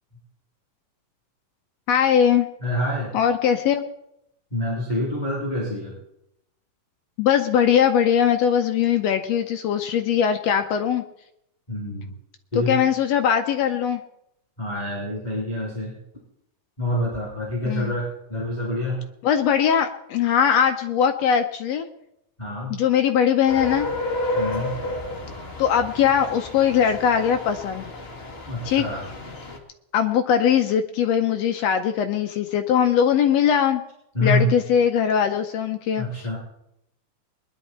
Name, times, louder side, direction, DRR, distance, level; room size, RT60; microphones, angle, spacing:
voice 1, 1.9-2.5 3.1-3.9 7.2-11.0 12.5-14.0 17.6-17.9 19.2-21.9 22.7-23.9 25.6-27.9 28.6-28.8 29.9-33.8 34.2-36.4, left 8 dB, 80° left, 7 dB, 1.5 m, -21 dB
voice 2, 2.6-3.1 4.5-5.9 11.7-12.1 12.5-12.7 14.6-15.9 16.8-19.0 22.4-22.7 24.3-24.8 28.4-29.0 34.1-34.5 36.0-36.4, left 1 dB, 15° left, -5 dB, 3.1 m, -26 dB
sound 1, 23.5-29.6, left 2 dB, 30° left, 1.1 m, -31 dB
21.0 x 11.0 x 4.3 m, 0.81 s
omnidirectional pair, 3.8 m